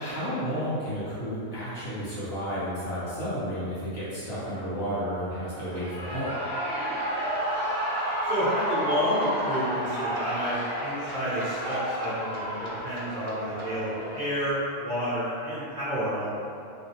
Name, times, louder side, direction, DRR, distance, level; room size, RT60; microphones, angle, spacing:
voice 1, 0.0-6.3, equal, 50° left, -13 dB, 1.4 m, -32 dB
Shout / Cheering, 5.6-14.5, equal, 5° right, 1.2 m, -31 dB
sound 1, 7.3-13.8, equal, 80° right, 1.0 m, -43 dB
voice 2, 8.2-16.3, equal, 45° right, -12 dB, 0.8 m, -30 dB
3.1 x 2.8 x 2.8 m, 2.6 s
omnidirectional pair, 1.3 m